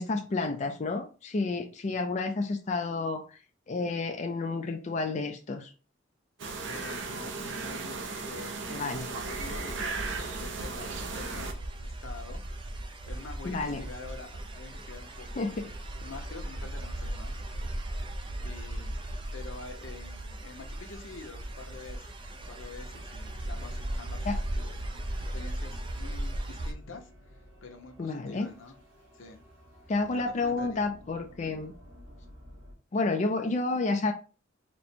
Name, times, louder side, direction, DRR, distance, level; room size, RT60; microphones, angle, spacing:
voice 1, 0.0-3.4 3.7-5.7 8.7-9.1 13.4-13.8 15.4-15.7 24.3-24.4 28.0-28.5 29.9-31.7 32.9-34.1, left 3 dB, 35° left, 3 dB, 0.4 m, -30 dB
sound 1, 6.4-11.5, right 4 dB, 65° right, 0.6 m, -36 dB
voice 2, 6.7-12.4 12.8-15.5 16.0-17.7 18.2-19.0 19.3-24.9 25.3-28.8 29.1-29.4 30.1-30.9, left 4 dB, 80° left, 4 dB, 0.9 m, -47 dB
sound 2, 9.1-26.7, right 1 dB, 25° right, 0.4 m, -37 dB
sound 3, 23.2-32.7, left 1 dB, 85° right, 1.5 m, -52 dB
4.2 x 2.1 x 4.3 m, 0.34 s
head